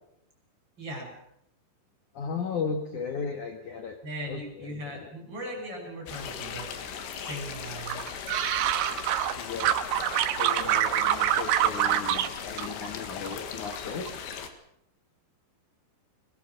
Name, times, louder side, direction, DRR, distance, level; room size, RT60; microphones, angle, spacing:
voice 1, 0.8-1.1 4.0-6.7 7.2-8.2, equal, 25° right, 1 dB, 6.5 m, -38 dB
voice 2, 2.1-4.0 4.3-5.1 9.3-9.8 10.4-14.1, left 5 dB, 55° left, 5 dB, 2.4 m, -35 dB
sound 1, 6.1-14.5, left 7 dB, 70° left, 3.9 m, -38 dB
sound 2, 7.9-9.3 9.6-12.3 12.6-13.4 13.7-14.1, right 12 dB, 80° right, 3.4 m, -26 dB
21.0 x 21.0 x 6.6 m, 0.76 s
omnidirectional pair, 5.4 m